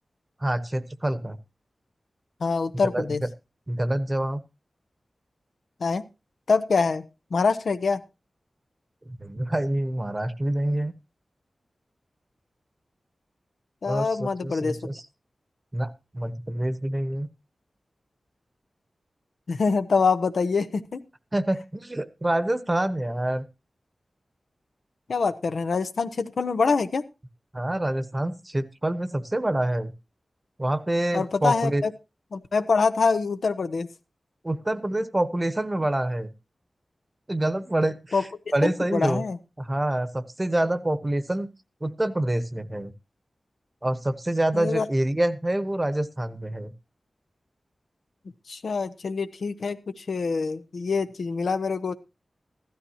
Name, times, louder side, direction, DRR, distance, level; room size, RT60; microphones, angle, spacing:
voice 1, 0.4-1.4 2.9-3.1 3.7-4.4 9.1-10.9 13.9-15.0 15.7-17.3 21.3-23.5 27.5-29.9 30.6-31.8 34.4-36.3 37.3-38.3 38.5-39.2 39.6-41.5 41.8-42.9 43.8-46.7, right 1 dB, 25° right, 12 dB, 1.0 m, -26 dB
voice 2, 2.4-3.2 5.8-6.0 6.5-7.0 7.3-8.0 13.8-14.8 19.5-21.0 25.1-27.0 31.1-31.9 32.3-33.9 38.1-38.2 38.6-39.4 44.5-44.9 48.5-51.9, left 4 dB, 85° left, 9 dB, 0.8 m, -25 dB
15.5 x 13.0 x 2.8 m, 0.27 s
wide cardioid pair, 80°, 0 cm